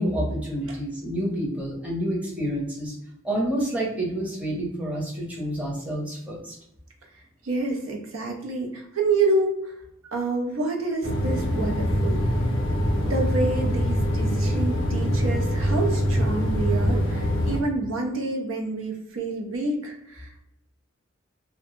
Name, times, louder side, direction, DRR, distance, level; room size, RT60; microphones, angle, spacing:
voice 1, 0.0-2.9 3.2-6.5, equal, 5° right, -4 dB, 0.6 m, -28 dB
voice 2, 7.4-9.7 10.1-12.2 13.0-20.4, right 2 dB, 90° right, 1 dB, 0.5 m, -28 dB
sound 1, 11.0-17.6, equal, 65° left, 0.5 m, -24 dB
2.0 x 2.0 x 3.0 m, 0.79 s
head